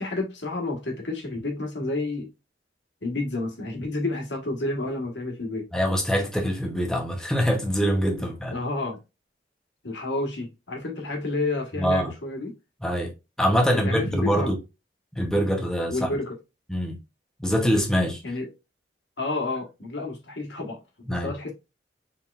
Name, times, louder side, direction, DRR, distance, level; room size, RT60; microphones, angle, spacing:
voice 1, 0.0-2.3 3.0-5.7 8.5-9.0 9.8-12.5 13.8-14.5 15.9-16.3 18.2-18.5 19.2-21.5, left 2 dB, 90° left, 1.5 m, -30 dB
voice 2, 5.7-8.5 11.8-12.1 12.8-14.6 15.2-16.1 16.7-17.0 17.4-18.2 21.1-21.3, equal, 5° left, 0.9 m, -24 dB
4.6 x 3.6 x 2.4 m
head